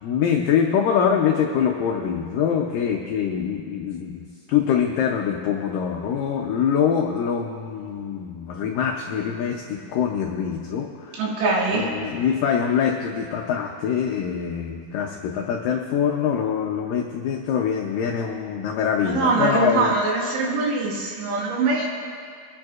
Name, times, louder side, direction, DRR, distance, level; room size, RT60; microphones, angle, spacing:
voice 1, 0.0-4.2 4.5-11.4 11.7-20.0, left 8 dB, 90° left, 1 dB, 1.9 m, -24 dB
voice 2, 11.2-11.9 19.0-21.9, right 3 dB, 85° right, -4 dB, 4.2 m, -22 dB
24.5 x 10.5 x 2.4 m, 2.2 s
omnidirectional pair, 4.9 m